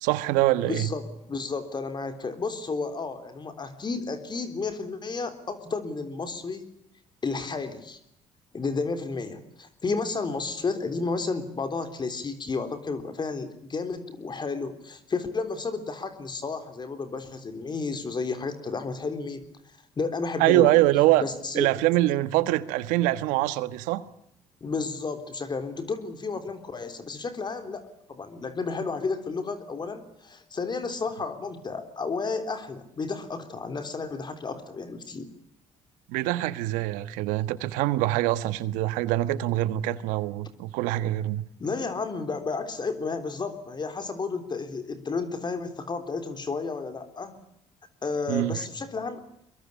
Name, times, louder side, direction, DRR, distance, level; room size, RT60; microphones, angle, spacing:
voice 1, 0.0-0.9 20.4-21.2 21.5-24.0 36.1-41.4 48.3-48.6, right 16 dB, 90° right, 1.4 m, -24 dB
voice 2, 0.7-6.7 7.2-8.0 8.5-19.4 20.0-20.7 21.2-21.8 24.6-35.3 41.6-47.4 48.0-49.2, left 4 dB, 35° left, 3.6 m, -32 dB
23.5 x 22.0 x 8.5 m
supercardioid pair, 80°, 13 cm